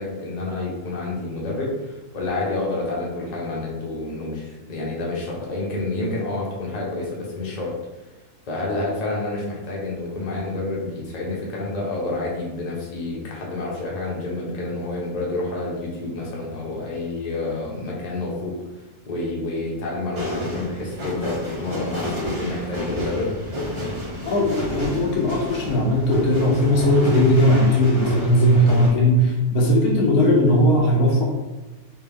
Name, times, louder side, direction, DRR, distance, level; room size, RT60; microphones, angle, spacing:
voice 1, 0.0-7.7 8.5-18.5 19.1-23.3, left 2 dB, 35° left, -4 dB, 0.7 m, -28 dB
sound 1, 20.1-28.9, left 1 dB, 30° right, 0.6 m, -30 dB
voice 2, 24.2-31.2, equal, 70° left, -1 dB, 1.1 m, -18 dB
3.4 x 2.5 x 3.4 m, 1.1 s
omnidirectional pair, 1.7 m